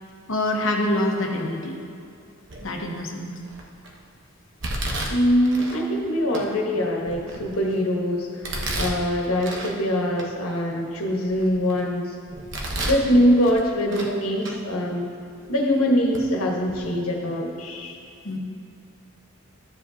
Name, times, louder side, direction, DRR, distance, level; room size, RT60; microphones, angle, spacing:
voice 1, 0.3-1.8 2.6-3.3 18.2-18.4, left 1 dB, 65° left, 1 dB, 1.1 m, -25 dB
Domestic sounds home sounds, 2.5-2.9 3.4-3.9 4.6-5.8 6.3-6.4 7.0-7.8 8.4-9.8 10.2-10.3 10.8-11.8 12.3-13.1 13.4-14.1 14.4-14.6 15.4-15.5 16.1-16.2 16.6-16.8, right 1 dB, 55° right, 1.0 m, -31 dB
voice 2, 5.1-8.5 8.8-12.2 12.6-15.1 15.5-18.0, equal, 90° left, 0 dB, 1.4 m, -23 dB
13.0 x 7.3 x 2.8 m, 2.5 s
head